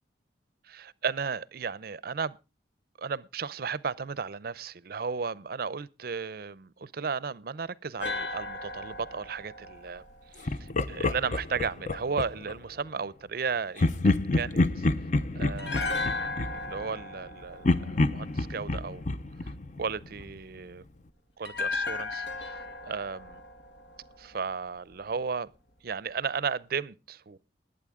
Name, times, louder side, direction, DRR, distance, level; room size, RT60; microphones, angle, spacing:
voice 1, 0.6-2.4 3.0-10.0 10.3-14.9 15.3-19.0 19.4-19.5 19.8-20.8 21.4-23.4 24.2-25.5 25.8-27.4, right 5 dB, 55° right, 0.5 m, -35 dB
sound 1, 8.0-11.2 15.6-18.8 21.4-24.7 24.9-25.1, left 3 dB, 75° left, 1.8 m, -36 dB
Laughter, 10.5-12.6 13.8-17.3 17.6-20.4, left 2 dB, 40° left, 0.7 m, -28 dB
20.0 x 8.8 x 3.6 m
head